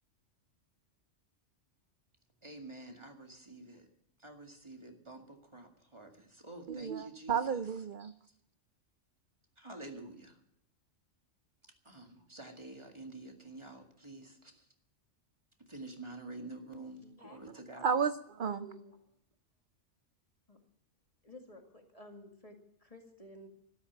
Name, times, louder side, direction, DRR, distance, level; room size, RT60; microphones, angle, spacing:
voice 1, 2.4-3.8 4.2-7.3 9.6-10.3 11.9-14.3 15.7-17.9, right 2 dB, 25° right, 3 dB, 2.1 m, -48 dB
voice 2, 6.7-8.1 17.5-18.8, right 6 dB, 50° right, 11 dB, 0.7 m, -33 dB
voice 3, 17.0-17.5 18.4-19.0 20.5-20.6 21.2-23.5, left 1 dB, 30° left, 3 dB, 2.1 m, -53 dB
13.0 x 12.5 x 7.4 m, 0.77 s
omnidirectional pair, 1.3 m